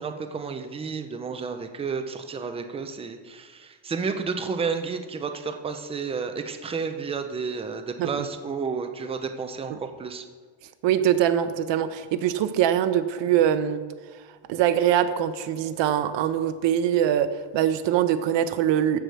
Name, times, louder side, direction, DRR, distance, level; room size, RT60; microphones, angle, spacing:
voice 1, 0.0-10.2, right 5 dB, 15° right, 7 dB, 0.4 m, -31 dB
voice 2, 10.8-13.8 14.5-19.0, right 10 dB, 60° right, 11 dB, 0.8 m, -23 dB
14.0 x 4.9 x 6.7 m, 1.5 s
cardioid pair, 180°, 48 cm